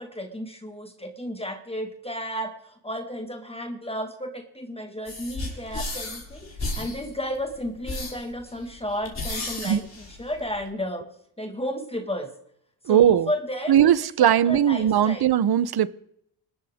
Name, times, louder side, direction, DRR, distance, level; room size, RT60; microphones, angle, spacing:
voice 1, 0.0-12.3 12.9-15.2, equal, 10° left, 1.8 m, -33 dB
sound 1, 5.0-10.7, left 2 dB, 35° left, 5.8 m, -34 dB
voice 2, 12.8-13.3 13.7-15.9, right 10 dB, 50° right, 0.9 m, -19 dB
26.5 x 13.0 x 3.6 m
cardioid pair, 115°, 47 cm